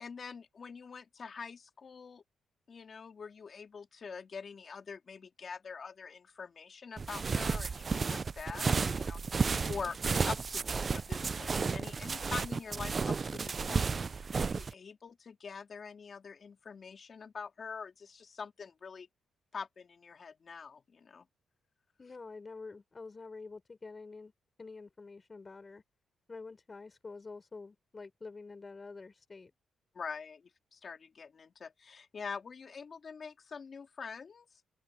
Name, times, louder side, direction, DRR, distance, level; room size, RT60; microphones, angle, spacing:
voice 1, 0.0-2.2 2.7-9.2 9.5-10.0 10.2-19.1 19.5-21.3 29.9-30.4 30.7-34.6, left 5 dB, 45° left, 3.6 m, -45 dB
sound 1, 7.0-14.7, right 5 dB, 35° right, 0.3 m, -32 dB
voice 2, 22.0-24.3 24.6-25.8 26.3-29.5, left 4 dB, 30° left, 6.4 m, -47 dB
open air
cardioid pair, 100°, 0 cm